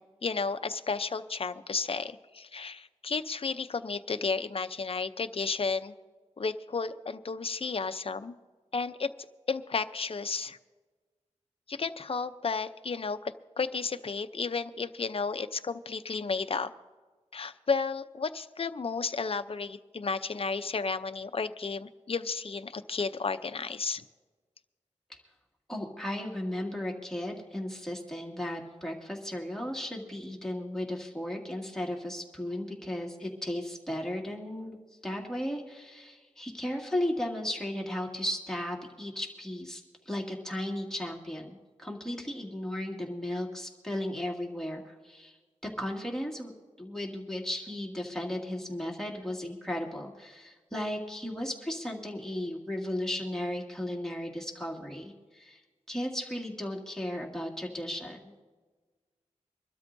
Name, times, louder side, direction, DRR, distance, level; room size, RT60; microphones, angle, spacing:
voice 1, 0.0-5.9 6.4-8.3 8.7-9.1 9.5-10.6 11.7-16.7 17.3-24.0, left 4 dB, 50° left, 10 dB, 0.6 m, -33 dB
voice 2, 25.7-34.8 35.0-45.4 45.6-46.5 46.8-55.6 55.9-58.4, left 1 dB, 5° left, -1 dB, 2.3 m, -35 dB
25.0 x 12.5 x 2.7 m, 1.4 s
wide cardioid pair, 85°, 12 cm